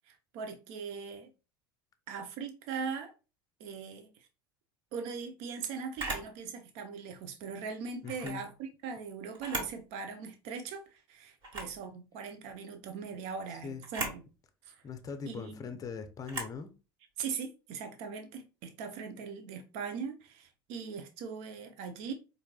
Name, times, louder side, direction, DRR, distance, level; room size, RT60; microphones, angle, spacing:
voice 1, 0.1-1.3 2.1-3.1 3.6-4.1 4.9-14.2 14.6-14.8 15.3-15.8 17.2-22.1, right 5 dB, 60° right, 0.8 m, -40 dB
Camera, 6.0-6.3 8.0-8.4 9.3-9.8 10.2-10.3 11.4-11.8 13.8-14.2 16.2-16.6, right 2 dB, 40° right, 1.8 m, -37 dB
voice 2, 8.0-8.4 13.6-13.8 14.8-16.7, left 5 dB, 30° left, 0.6 m, -40 dB
4.5 x 2.6 x 2.3 m
hypercardioid pair, 75°, 13 cm